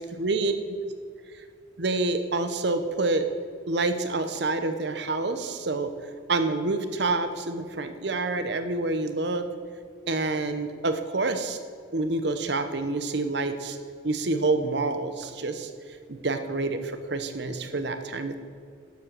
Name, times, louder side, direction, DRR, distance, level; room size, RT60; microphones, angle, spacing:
voice 1, 0.2-0.8 1.8-3.3 3.7-5.9 6.3-9.5 10.1-11.6 11.9-13.8 14.0-15.7 16.1-18.4, right 3 dB, 60° right, 9 dB, 0.9 m, -27 dB
11.5 x 7.5 x 6.7 m, 2.2 s
head